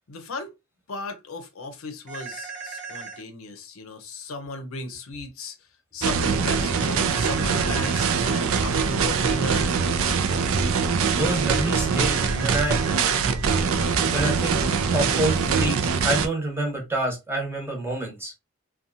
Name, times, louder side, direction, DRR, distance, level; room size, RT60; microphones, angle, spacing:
voice 1, 0.1-0.5 0.9-5.5 5.9-9.7, left 3 dB, 75° left, 0.6 m, -36 dB
sound 1, 2.1-3.2 7.1-8.2 12.1-13.2, right 5 dB, 35° right, 0.9 m, -37 dB
sound 2, 6.0-16.3, right 5 dB, 70° right, 0.4 m, -23 dB
voice 2, 11.1-12.8 14.1-14.6 14.9-18.3, right 1 dB, 10° right, 0.9 m, -27 dB
2.7 x 2.3 x 2.5 m
head